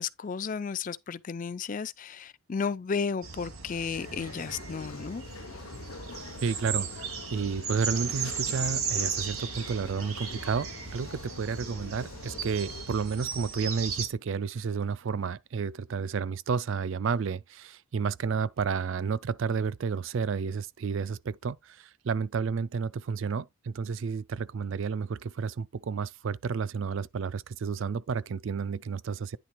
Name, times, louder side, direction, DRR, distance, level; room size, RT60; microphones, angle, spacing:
voice 1, 0.0-5.2, left 5 dB, 35° left, 0.4 m, -33 dB
sound 1, 3.2-14.1, right 6 dB, 75° right, 1.8 m, -36 dB
sound 2, 3.9-12.9, left 4 dB, 70° left, 0.8 m, -45 dB
voice 2, 6.4-29.4, right 5 dB, 60° right, 0.4 m, -31 dB
9.9 x 3.3 x 4.5 m
head